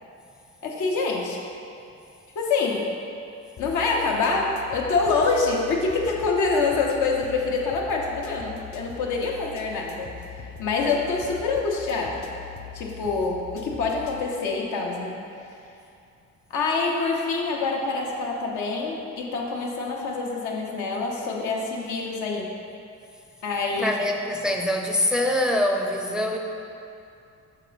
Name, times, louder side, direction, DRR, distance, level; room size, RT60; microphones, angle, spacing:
voice 1, 0.6-1.4 2.3-2.9 3.6-10.1 10.6-12.2 12.7-15.1 16.5-22.5 23.4-24.0, left 4 dB, 80° left, -1 dB, 1.1 m, -26 dB
sound 1, 3.6-14.2, left 7 dB, 50° left, 0.7 m, -42 dB
voice 2, 23.8-26.4, left 1 dB, ahead, 1 dB, 0.5 m, -24 dB
6.7 x 3.9 x 5.1 m, 2.6 s
cardioid pair, 90°, 30 cm